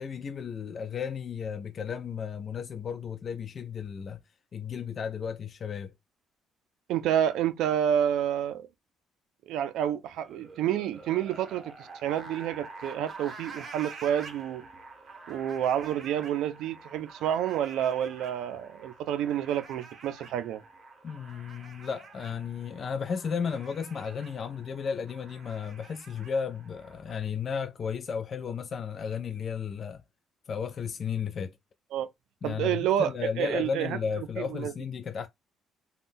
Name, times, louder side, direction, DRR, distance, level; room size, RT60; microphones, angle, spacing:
voice 1, 0.0-4.2 4.5-5.9 21.0-30.0 30.5-31.6 32.4-35.3, left 6 dB, 40° left, 0.3 m, -34 dB
voice 2, 6.9-8.7 9.5-14.6 15.3-20.6 31.9-32.1 32.4-34.7, right 10 dB, 80° right, 0.4 m, -29 dB
sound 1, 10.2-27.2, right 3 dB, 40° right, 0.8 m, -48 dB
3.5 x 2.2 x 2.5 m
cardioid pair, 130°, 0 cm